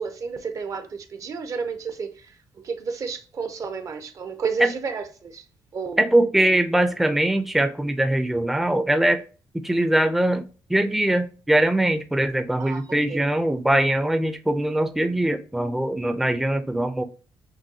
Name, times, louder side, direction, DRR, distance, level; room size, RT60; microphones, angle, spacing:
voice 1, 0.0-5.4 5.7-6.0 12.6-12.8 13.1-13.2, right 5 dB, 45° right, 0.6 m, -31 dB
voice 2, 6.0-9.2 9.5-17.0, right 1 dB, 5° right, 0.4 m, -22 dB
6.2 x 2.3 x 2.7 m
cardioid pair, 125°, 8 cm